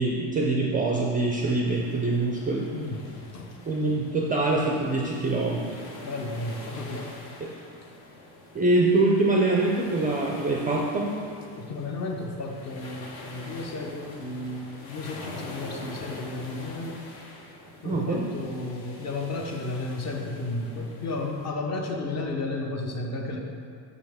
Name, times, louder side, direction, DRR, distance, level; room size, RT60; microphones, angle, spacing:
voice 1, 0.0-2.7 3.7-5.8 8.5-11.1 17.8-18.2, right 2 dB, 20° right, -2 dB, 0.3 m, -24 dB
sound 1, 1.6-21.5, left 2 dB, 50° left, 1.0 m, -45 dB
voice 2, 2.7-3.5 6.0-7.1 11.6-17.0 17.8-23.4, left 2 dB, 35° left, 2 dB, 0.7 m, -33 dB
6.0 x 5.4 x 3.5 m, 2.3 s
cardioid pair, 135°, 47 cm